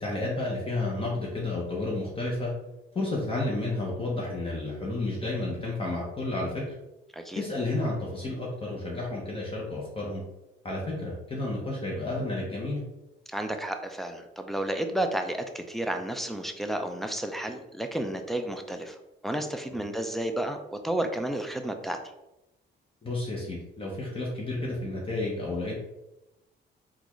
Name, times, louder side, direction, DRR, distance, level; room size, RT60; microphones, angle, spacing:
voice 1, 0.0-2.5 2.9-6.6 7.3-10.2 10.6-12.8 23.0-25.7, left 2 dB, 25° left, -4 dB, 0.8 m, -31 dB
voice 2, 7.1-7.4 13.3-19.0 19.2-22.0, right 1 dB, ahead, 5 dB, 0.4 m, -31 dB
3.8 x 2.3 x 3.0 m, 0.95 s
cardioid pair, 90°, 20 cm